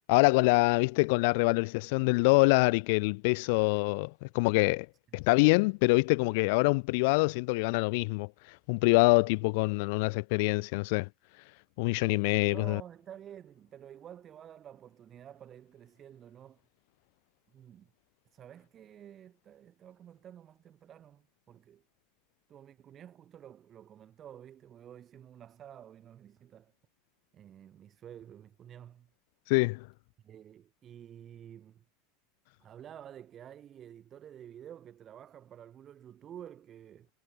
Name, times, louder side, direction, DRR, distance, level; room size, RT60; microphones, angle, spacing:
voice 1, 0.1-4.9 5.1-8.3 8.7-11.1 11.8-12.8 29.5-29.8, left 28 dB, 60° left, 0.4 m, -25 dB
voice 2, 12.5-16.6 17.5-17.9 18.3-21.8 22.5-26.7 27.3-29.1 30.2-31.8 32.6-37.1, right 10 dB, 30° right, 1.6 m, -50 dB
supercardioid pair, 145°, 0 cm